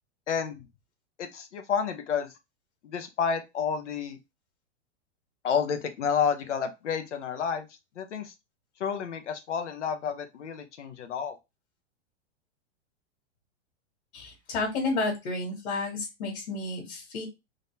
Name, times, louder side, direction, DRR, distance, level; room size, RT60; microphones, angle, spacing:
voice 1, 0.3-0.7 1.2-2.3 2.8-4.2 5.4-7.7 8.0-8.3 8.8-11.4, left 7 dB, 85° left, 8 dB, 1.0 m, -30 dB
voice 2, 14.1-17.2, left 3 dB, 65° left, 0 dB, 2.2 m, -31 dB
3.9 x 2.8 x 3.3 m, 0.23 s
hypercardioid pair, 130°, 35 cm